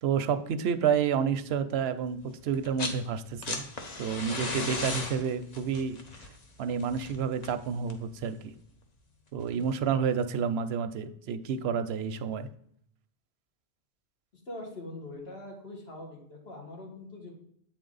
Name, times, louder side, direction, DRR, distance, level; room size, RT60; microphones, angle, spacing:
voice 1, 0.0-3.6 4.0-6.0 6.6-8.4 9.3-12.5, right 7 dB, 90° right, 12 dB, 0.8 m, -29 dB
sound 1, 2.5-3.0 3.3-8.1 9.4-9.5, left 3 dB, 45° left, 0.9 m, -37 dB
voice 2, 14.5-17.3, left 2 dB, 80° left, 0 dB, 2.1 m, -42 dB
8.1 x 4.3 x 3.9 m, 0.68 s
omnidirectional pair, 1.0 m